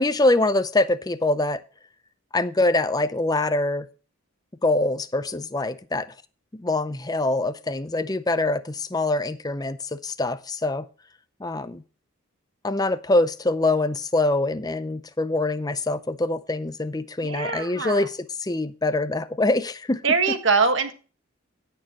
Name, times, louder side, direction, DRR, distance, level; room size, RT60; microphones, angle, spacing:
voice 1, 0.0-1.6 2.3-3.9 4.6-6.1 6.5-10.8 11.4-11.8 12.6-20.0, left 2 dB, 20° left, 0.6 m, -24 dB
voice 2, 17.2-18.1 20.0-20.9, right 4 dB, 60° right, 1.5 m, -23 dB
17.0 x 6.7 x 2.9 m
head